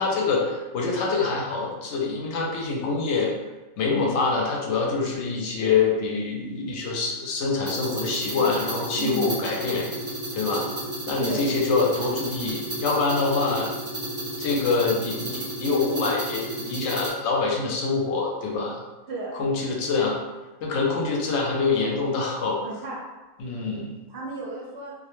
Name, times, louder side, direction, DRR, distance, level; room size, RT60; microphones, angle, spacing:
voice 1, 0.0-3.3 3.8-9.9 10.3-10.7 11.1-13.7 14.4-18.8 19.3-20.2 20.6-22.6 23.4-24.0, left 4 dB, 70° left, -1 dB, 0.8 m, -25 dB
sound 1, 7.7-17.1, right 1 dB, 30° right, 0.6 m, -33 dB
voice 2, 9.0-9.3 11.2-11.4 19.1-19.3 22.6-23.0 24.1-24.9, right 2 dB, 65° right, -4 dB, 0.8 m, -33 dB
2.2 x 2.1 x 3.0 m, 1.1 s
omnidirectional pair, 1.3 m